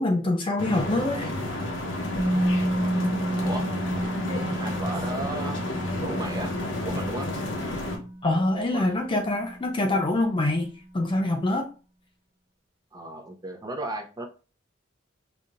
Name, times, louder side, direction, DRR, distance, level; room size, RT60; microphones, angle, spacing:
voice 1, 0.0-1.3 8.2-11.7, left 2 dB, 25° left, 0.4 m, -25 dB
sound 1, 0.6-8.0, left 2 dB, 65° left, 1.0 m, -31 dB
Musical instrument, 2.2-10.1 10.3-10.5, right 1 dB, 60° right, 0.9 m, -31 dB
voice 2, 4.6-5.6 6.0-6.5 6.8-7.3 8.7-8.9 12.9-14.3, right 2 dB, 20° right, 0.6 m, -34 dB
5.1 x 2.8 x 2.4 m
head